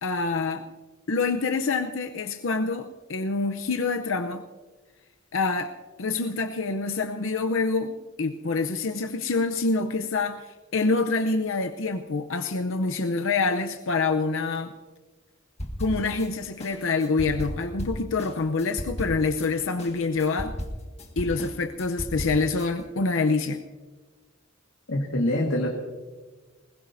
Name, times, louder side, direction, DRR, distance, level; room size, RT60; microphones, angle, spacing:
voice 1, 0.0-0.7 1.1-4.4 5.3-5.7 6.0-10.5 10.7-14.7 15.8-20.5 21.2-23.6, left 3 dB, 70° left, 7 dB, 0.7 m, -26 dB
sound 1, 15.6-16.3 16.6-19.5 19.8-22.7, equal, 30° left, 1.7 m, -35 dB
voice 2, 24.9-25.7, left 1 dB, 90° left, 0 dB, 1.8 m, -25 dB
21.0 x 20.0 x 2.7 m, 1.3 s
head